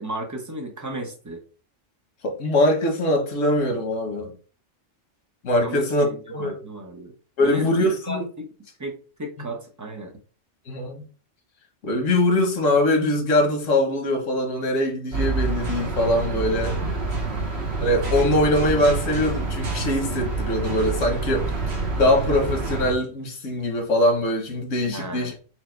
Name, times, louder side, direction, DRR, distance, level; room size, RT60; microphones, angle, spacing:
voice 1, 0.0-1.4 5.6-7.1 7.4-8.5 8.8-10.1 24.9-25.3, right 1 dB, 20° right, 0.6 m, -34 dB
voice 2, 2.2-4.3 5.4-6.6 7.4-8.2 10.7-11.0 11.8-16.7 17.8-21.5 22.0-25.3, left 1 dB, 85° left, 1.4 m, -22 dB
sound 1, 15.1-22.9, right 3 dB, 60° right, 1.1 m, -27 dB
4.5 x 2.1 x 4.4 m
omnidirectional pair, 1.3 m